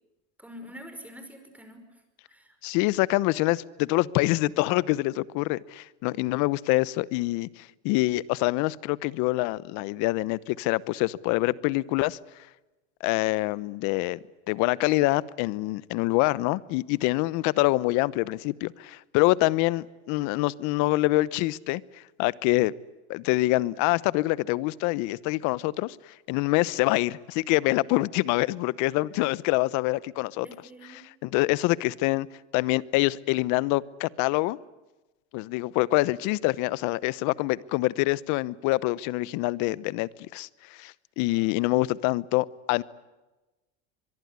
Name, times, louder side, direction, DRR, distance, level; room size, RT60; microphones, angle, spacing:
voice 1, 0.4-1.8 2.3-2.6 30.4-31.1, equal, 5° right, 7 dB, 5.5 m, -45 dB
voice 2, 2.6-12.2 13.0-14.2 14.5-21.8 22.2-22.7 23.1-26.0 26.3-30.5 31.0-32.3 32.5-34.6 35.3-42.8, left 20 dB, 55° left, 20 dB, 1.0 m, -25 dB
24.5 x 22.5 x 9.7 m, 1.1 s
supercardioid pair, 115°, 35 cm